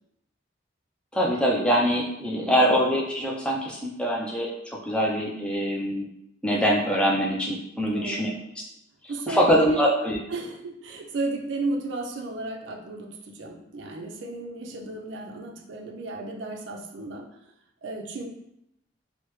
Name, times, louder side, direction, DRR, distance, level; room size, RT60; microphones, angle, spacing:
voice 1, 1.1-4.5 4.8-6.1 6.4-8.3 9.3-10.2, equal, 5° left, -3 dB, 0.4 m, -23 dB
voice 2, 2.2-2.5 7.8-8.4 9.1-9.9 10.3-17.3 17.8-18.3, right 2 dB, 80° right, 2 dB, 0.5 m, -34 dB
3.2 x 2.1 x 3.0 m, 0.81 s
head